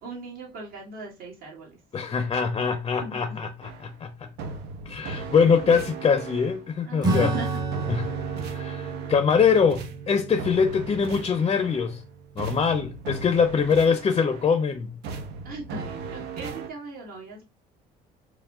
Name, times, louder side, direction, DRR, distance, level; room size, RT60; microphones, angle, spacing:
voice 1, 0.0-1.8 2.6-2.7 3.0-3.2 5.0-5.3 6.9-7.5 15.4-17.5, right 3 dB, 60° right, 1.8 m, -38 dB
voice 2, 1.9-4.3 4.9-7.3 7.9-8.1 8.4-12.0 12.4-15.0, left 6 dB, 30° left, 0.5 m, -23 dB
sound 1, 3.6-4.0 4.4-6.7 7.0-9.4 9.7-12.0 12.4-14.6 15.0-16.7, right 4 dB, 85° right, 0.8 m, -38 dB
Acoustic guitar / Strum, 7.0-13.0, right 3 dB, 25° right, 0.9 m, -32 dB
4.6 x 2.1 x 3.6 m
cardioid pair, 110°, 17 cm